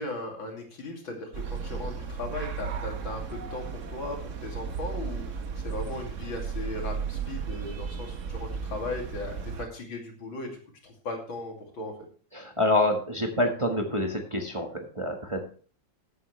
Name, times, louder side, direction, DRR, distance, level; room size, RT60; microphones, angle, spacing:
voice 1, 0.0-5.4 5.6-10.5 10.8-11.9, left 2 dB, 75° left, 2 dB, 3.4 m, -37 dB
sound 1, 1.3-9.6, right 6 dB, 45° right, 1.1 m, -35 dB
voice 2, 12.3-15.4, left 1 dB, 15° right, 2 dB, 1.4 m, -27 dB
14.5 x 9.2 x 3.3 m, 0.41 s
omnidirectional pair, 2.2 m